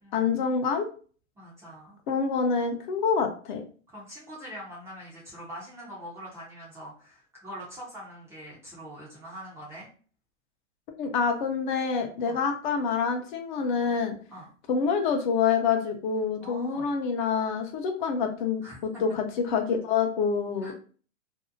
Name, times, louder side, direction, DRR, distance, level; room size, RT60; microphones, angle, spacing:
voice 1, 0.1-0.9 2.1-3.6 11.0-14.1 14.7-20.7, left 5 dB, 40° left, 5 dB, 0.5 m, -27 dB
voice 2, 1.4-2.0 3.9-9.9 12.3-12.4 14.3-14.5 16.4-16.9 18.6-19.2 20.6-20.7, equal, 5° right, -7 dB, 0.4 m, -43 dB
2.6 x 2.0 x 2.5 m, 0.40 s
hypercardioid pair, 130°, 39 cm